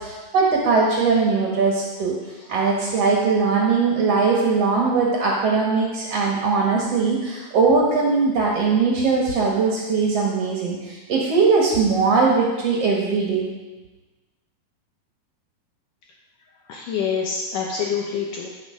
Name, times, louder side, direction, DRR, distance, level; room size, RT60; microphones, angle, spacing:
voice 1, 0.0-2.2 2.5-13.5, right 4 dB, 55° right, -3 dB, 2.1 m, -20 dB
voice 2, 16.7-18.5, left 6 dB, 70° left, -1 dB, 2.4 m, -26 dB
15.0 x 6.4 x 5.0 m, 1.2 s
omnidirectional pair, 4.2 m